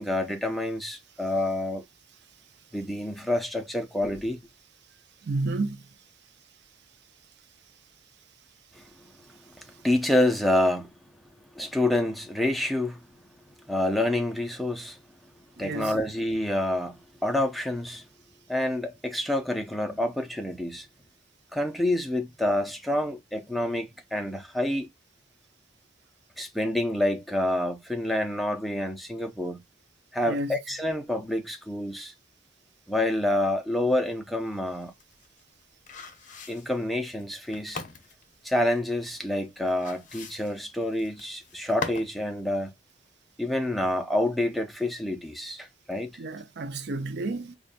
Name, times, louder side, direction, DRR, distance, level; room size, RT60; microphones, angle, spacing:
voice 1, 0.0-1.8 2.7-4.4 8.7-8.8 9.6-10.9 11.5-13.0 13.7-15.0 15.6-18.0 18.5-20.9 21.5-24.9 26.4-29.6 30.1-32.1 32.9-34.9 36.5-37.8 38.4-42.7 43.4-46.2, left 1 dB, ahead, 0.5 m, -28 dB
voice 2, 5.2-5.8 15.6-16.1 30.3-30.5 46.2-47.5, right 2 dB, 55° right, 0.5 m, -31 dB
sound 1, 34.8-42.2 42.5-42.6, left 4 dB, 40° left, 0.8 m, -41 dB
5.1 x 2.3 x 2.5 m
head